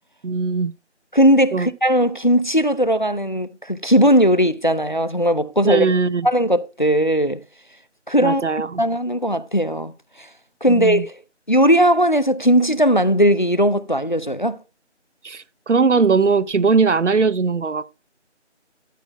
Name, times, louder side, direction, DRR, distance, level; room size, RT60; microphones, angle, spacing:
voice 1, 0.2-0.7 1.5-1.7 5.6-6.3 8.2-8.8 10.7-11.0 15.2-17.8, right 4 dB, 75° right, 0.7 m, -19 dB
voice 2, 1.1-5.9 6.2-7.4 8.1-8.4 8.8-9.9 10.2-10.3 10.6-11.2 11.5-14.6, equal, 40° left, 0.5 m, -18 dB
12.5 x 4.3 x 4.5 m
figure-of-eight pair, 170°, 36 cm